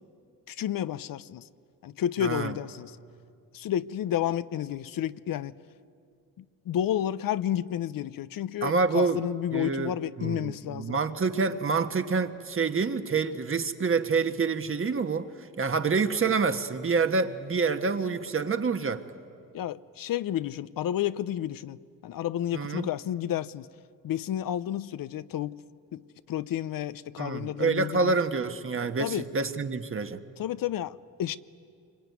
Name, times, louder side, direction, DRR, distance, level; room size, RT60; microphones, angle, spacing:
voice 1, 0.5-1.4 1.8-2.9 3.5-5.5 6.7-11.0 19.5-21.8 22.0-23.7 24.0-25.6 25.9-26.0 26.3-28.1 29.0-29.3 30.4-31.4, left 11 dB, 75° left, 0.7 m, -31 dB
voice 2, 2.2-2.6 8.6-9.2 9.5-19.0 22.5-22.9 27.2-30.2, right 4 dB, 40° right, 1.3 m, -27 dB
26.0 x 23.5 x 9.4 m
cardioid pair, 100°, 34 cm